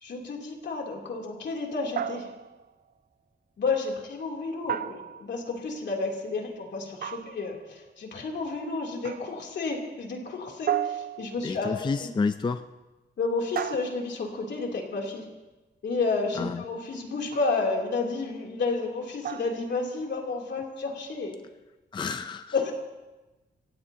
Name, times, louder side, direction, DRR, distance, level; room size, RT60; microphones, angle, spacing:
voice 1, 0.0-2.3 3.6-12.1 13.2-15.3 15.8-21.3 22.5-22.7, left 3 dB, 70° left, 0 dB, 3.0 m, -31 dB
sound 1, 2.0-2.7 4.7-5.5 7.0-7.6 9.0-9.5 10.7-11.6 13.6-14.4 17.3-17.7 19.2-19.7, right 9 dB, 55° right, 0.5 m, -34 dB
voice 2, 11.4-12.6 16.4-16.6 21.9-22.5, left 4 dB, 25° left, 9 dB, 0.4 m, -29 dB
27.0 x 15.5 x 2.8 m, 1.1 s
wide cardioid pair, 140°, 19 cm